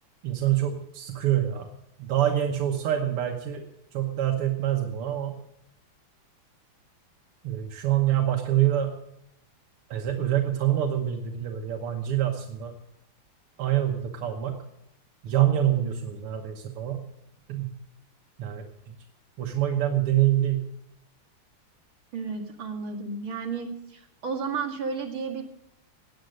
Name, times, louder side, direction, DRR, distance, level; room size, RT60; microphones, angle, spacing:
voice 1, 0.2-1.7 2.0-3.6 3.9-5.4 7.4-8.9 9.9-12.7 13.6-14.5 15.2-17.0 17.5-17.7 18.4-19.0 19.4-20.6, right 12 dB, 85° right, 3 dB, 2.1 m, -26 dB
voice 2, 22.1-25.4, right 5 dB, 65° right, 1 dB, 2.8 m, -32 dB
17.0 x 9.1 x 6.4 m, 0.82 s
omnidirectional pair, 2.4 m